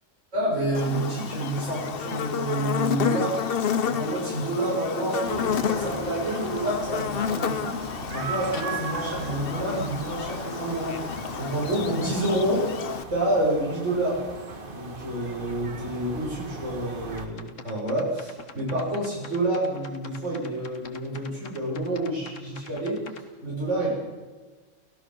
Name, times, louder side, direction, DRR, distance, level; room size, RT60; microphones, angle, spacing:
voice 1, 0.3-3.4 3.8-7.8 8.1-11.0 11.4-12.7 13.1-14.2 14.7-23.0 23.4-23.9, right 1 dB, 70° right, -6 dB, 6.8 m, -28 dB
Buzz, 0.7-13.0, left 8 dB, 50° left, 0.9 m, -30 dB
sound 1, 5.2-17.3, right 3 dB, 45° right, 1.8 m, -38 dB
sound 2, 17.1-23.2, left 5 dB, 80° left, 1.9 m, -44 dB
29.5 x 16.5 x 6.2 m, 1.3 s
omnidirectional pair, 1.3 m